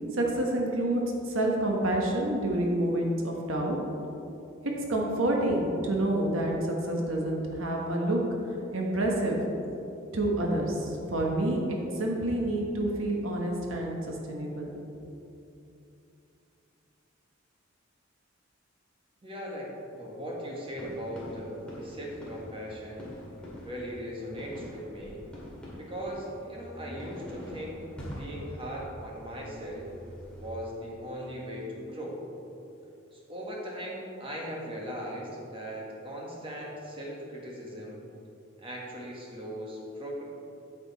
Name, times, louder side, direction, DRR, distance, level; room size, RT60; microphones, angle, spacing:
voice 1, 0.1-3.8 4.6-8.3 8.7-9.4 10.1-14.7 15.1-15.2, right 1 dB, 80° right, 0 dB, 1.3 m, -28 dB
voice 2, 19.2-23.1 23.6-25.2 25.8-27.9 28.2-29.9 30.4-32.2 33.1-38.0 38.6-40.2, equal, 25° right, -3 dB, 1.7 m, -39 dB
sound 1, 20.7-30.5, equal, 5° left, 2.2 m, -44 dB
8.9 x 7.0 x 4.2 m, 2.8 s
head